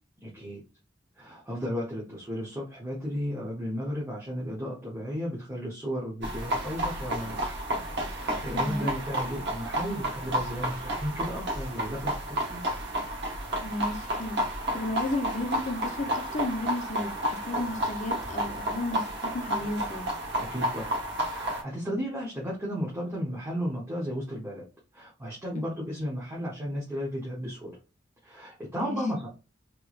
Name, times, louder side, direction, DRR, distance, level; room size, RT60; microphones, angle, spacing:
voice 1, 0.2-0.6 1.2-7.6 8.1-12.6 20.4-20.9 21.3-24.6 24.9-27.8 28.2-29.3, equal, 15° right, 0.9 m, -34 dB
sound 1, 6.2-21.6, right 1 dB, 65° right, 1.0 m, -31 dB
voice 2, 8.5-8.9 13.6-14.4 14.7-20.1 28.8-29.0, left 2 dB, 40° left, 0.6 m, -33 dB
3.2 x 3.0 x 2.4 m
head